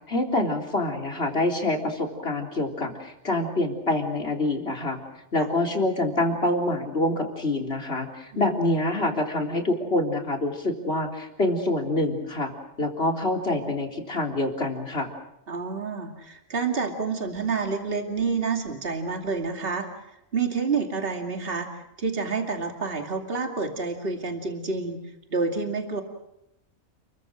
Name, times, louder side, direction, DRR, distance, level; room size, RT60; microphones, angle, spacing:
voice 1, 0.1-5.0 5.3-12.5 12.8-15.1, left 2 dB, 45° left, 2 dB, 4.0 m, -26 dB
voice 2, 8.3-8.7 15.5-19.9 20.3-25.0 25.3-26.0, right 4 dB, 40° right, 3 dB, 2.7 m, -28 dB
30.0 x 22.5 x 6.4 m, 0.84 s
omnidirectional pair, 1.5 m